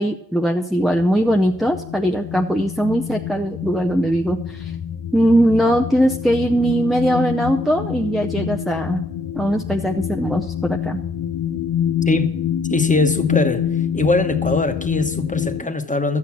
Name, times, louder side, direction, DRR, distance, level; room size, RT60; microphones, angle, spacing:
voice 1, 0.0-4.7 5.1-9.0 9.3-11.0, equal, ahead, 3 dB, 0.7 m, -20 dB
sound 1, 0.8-15.6, left 10 dB, 90° left, 0.6 m, -26 dB
voice 2, 12.7-13.7 13.9-16.2, left 2 dB, 20° left, 7 dB, 1.2 m, -21 dB
12.0 x 8.7 x 6.1 m, 0.72 s
cardioid pair, 50°, 42 cm